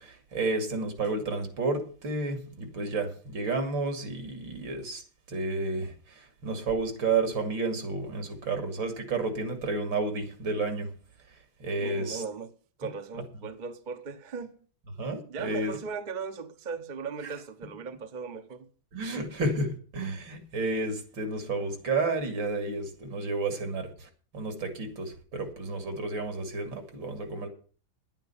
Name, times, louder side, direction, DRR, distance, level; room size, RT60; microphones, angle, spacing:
voice 1, 0.0-5.0 5.3-10.9 11.6-12.2 15.0-15.8 17.2-17.3 18.9-27.5, right 3 dB, 75° right, 3.1 m, -31 dB
voice 2, 11.8-12.5 12.8-14.6 15.3-18.7, right 5 dB, 35° right, 0.8 m, -38 dB
11.0 x 9.2 x 7.0 m
omnidirectional pair, 2.1 m